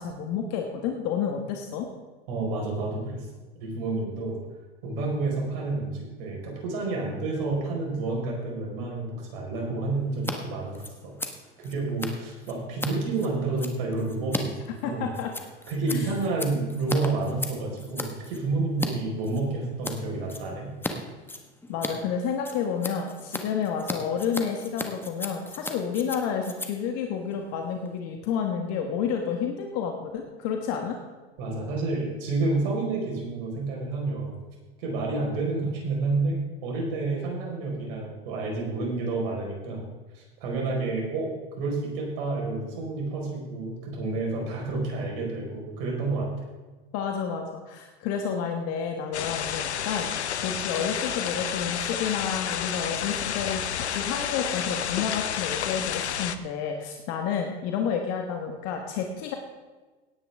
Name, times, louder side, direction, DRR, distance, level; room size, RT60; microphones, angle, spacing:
voice 1, 0.0-1.9 14.8-15.3 15.9-16.1 21.7-31.0 46.9-59.3, left 7 dB, 50° left, 3 dB, 1.6 m, -30 dB
voice 2, 2.3-3.2 3.6-4.4 4.8-11.1 11.6-15.1 15.7-20.7 31.4-34.3 34.8-36.4 36.6-39.8 40.1-41.3 41.6-46.3, right 3 dB, 60° right, -1 dB, 5.0 m, -29 dB
Scissors, 10.1-10.3 10.6-18.9 19.2-20.0 20.3-20.9 21.2-28.0, left 2 dB, 5° left, 1.4 m, -36 dB
sound 1, 49.1-56.4, left 9 dB, 85° left, 0.8 m, -30 dB
17.5 x 9.7 x 3.6 m, 1.3 s
hypercardioid pair, 95°, 33 cm